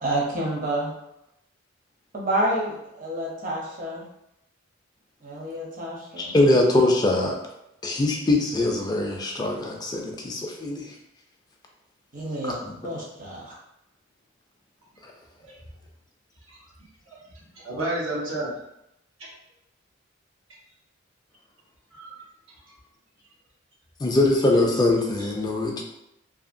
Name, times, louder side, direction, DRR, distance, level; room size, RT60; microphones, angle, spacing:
voice 1, 0.0-0.9 2.1-4.0 5.2-6.4 12.1-13.6, right 1 dB, 40° right, -3 dB, 0.7 m, -29 dB
voice 2, 6.2-7.4 7.8-10.9 12.6-12.7 15.0-15.1 24.0-25.8, left 2 dB, 20° left, 1 dB, 0.3 m, -22 dB
voice 3, 17.5-18.5 19.2-19.3 21.9-22.3 22.6-22.7 25.2-25.3, right 1 dB, 90° right, -6 dB, 1.1 m, -31 dB
2.7 x 2.7 x 2.5 m, 0.82 s
head